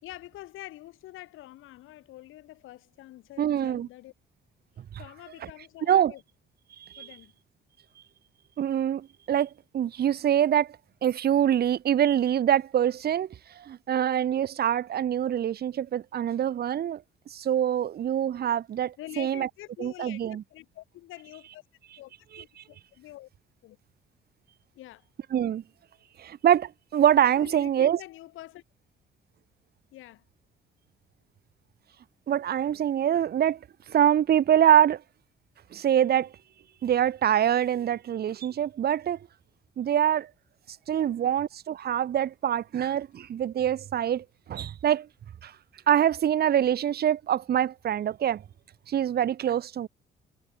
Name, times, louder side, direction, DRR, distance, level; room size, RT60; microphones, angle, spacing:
voice 1, 0.0-4.1 5.0-6.2 7.0-7.3 19.0-21.6 22.0-23.3 23.6-23.8 24.7-25.0 27.4-28.6 29.9-30.2 41.0-41.3, left 16 dB, 90° left, 5.7 m, -46 dB
voice 2, 3.4-3.9 5.9-6.1 6.8-7.1 8.6-13.3 13.6-17.0 17.3-19.5 19.8-20.4 22.3-22.4 25.3-25.6 26.2-28.0 32.3-33.6 33.9-35.0 35.7-36.3 36.8-39.2 39.8-40.3 40.9-45.1 45.4-45.5 45.9-48.4 48.9-49.9, right 10 dB, 50° right, 0.8 m, -25 dB
cardioid pair, 90°, 20 cm